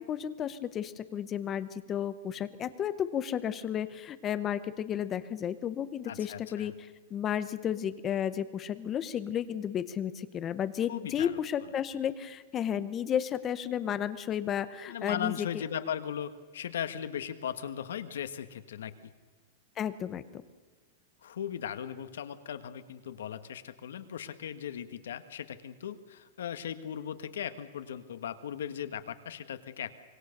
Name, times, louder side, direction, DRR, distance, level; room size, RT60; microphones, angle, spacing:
voice 1, 0.0-15.6 19.8-20.4, left 9 dB, 15° left, 14 dB, 0.8 m, -33 dB
voice 2, 6.1-6.7 10.9-11.3 14.9-18.9 21.2-29.9, left 9 dB, 85° left, 11 dB, 1.5 m, -38 dB
25.0 x 20.5 x 6.7 m, 1.4 s
supercardioid pair, 175°, 0 cm